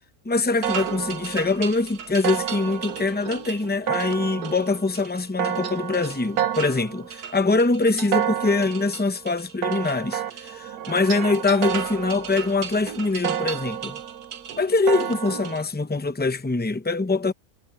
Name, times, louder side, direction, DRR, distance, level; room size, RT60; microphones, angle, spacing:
voice 1, 0.2-14.0 14.6-17.3, left 3 dB, 15° left, 0.3 m, -23 dB
sound 1, 0.6-15.6, right 10 dB, 80° right, 1.6 m, -30 dB
omnidirectional pair, 1.6 m